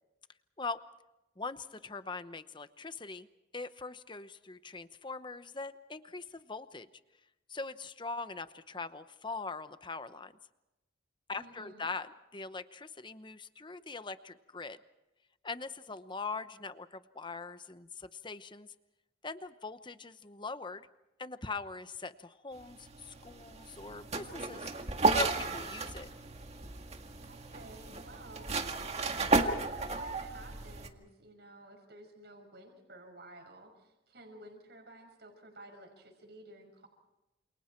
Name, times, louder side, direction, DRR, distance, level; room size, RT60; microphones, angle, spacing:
voice 1, 1.4-3.3 3.5-6.9 7.5-10.3 11.3-14.8 15.4-18.7 19.2-20.9 21.2-24.7 25.1-26.1, left 4 dB, 25° left, 12 dB, 0.9 m, -42 dB
voice 2, 11.3-11.9 27.2-28.5 29.4-36.9, right 1 dB, 60° right, 3 dB, 5.7 m, -53 dB
sound 1, 22.6-30.9, right 3 dB, 35° right, 2.0 m, -33 dB
28.5 x 28.0 x 4.5 m, 0.98 s
head